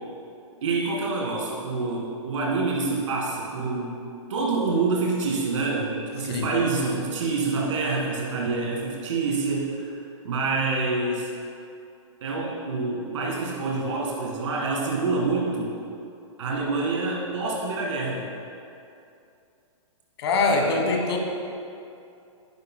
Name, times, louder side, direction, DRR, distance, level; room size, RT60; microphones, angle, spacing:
voice 1, 0.6-4.0 4.3-9.9 10.2-11.3 12.2-15.8 16.4-18.3, right 3 dB, 65° right, -3 dB, 1.9 m, -26 dB
voice 2, 20.2-21.2, left 3 dB, 50° left, 2 dB, 1.3 m, -23 dB
11.0 x 9.5 x 2.2 m, 2.6 s
hypercardioid pair, 160°, 17 cm